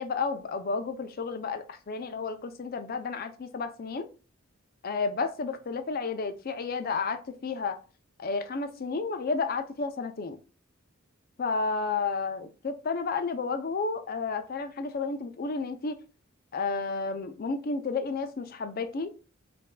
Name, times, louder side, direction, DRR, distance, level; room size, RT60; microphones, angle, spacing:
voice 1, 0.0-4.1 4.8-7.8 8.2-10.4 11.4-16.0 16.5-19.1, left 4 dB, 45° left, 0.5 m, -31 dB
5.3 x 2.6 x 2.2 m
head